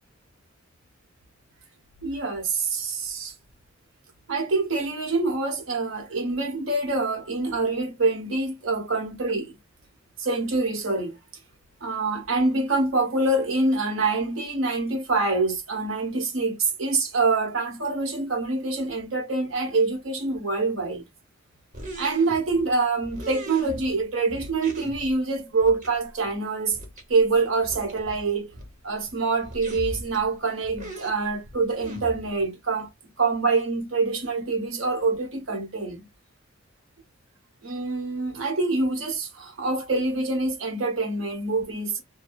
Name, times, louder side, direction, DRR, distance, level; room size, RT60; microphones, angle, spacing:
voice 1, 2.0-3.3 4.3-9.5 10.2-11.2 11.8-21.0 22.0-26.8 27.1-28.5 28.8-32.9 33.2-36.0 37.6-42.0, right 3 dB, 85° right, 1.2 m, -25 dB
sound 1, 21.7-22.7 23.0-24.0 24.3-25.1 25.6-25.9 26.2-26.3 26.7-27.0 27.3-27.4 27.6-28.7 29.1-29.2 29.4-30.3 30.6-32.4, right 1 dB, 40° right, 1.0 m, -40 dB
2.8 x 2.2 x 2.4 m
head